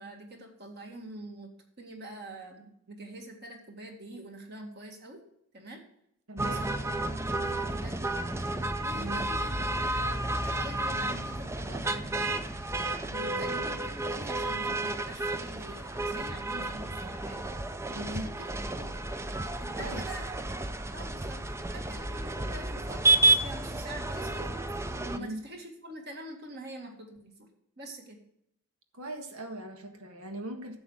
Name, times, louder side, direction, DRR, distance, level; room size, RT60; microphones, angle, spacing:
voice 1, 0.0-1.5 1.8-5.2 5.5-5.8 6.4-6.9 7.2-8.2 8.8-12.4 13.0-17.5 18.1-18.3 18.7-18.9 19.6-20.5 20.9-21.4 21.7-24.5 25.0-27.5 27.8-28.2, right 1 dB, 45° right, 2.1 m, -45 dB
voice 2, 6.3-6.7 9.0-9.3 13.2-13.6 17.9-18.3 19.8-20.1 25.1-25.4 28.9-30.8, right 1 dB, 85° right, 1.6 m, -39 dB
sound 1, 6.4-25.2, right 2 dB, 10° right, 0.4 m, -31 dB
11.0 x 7.1 x 4.9 m
head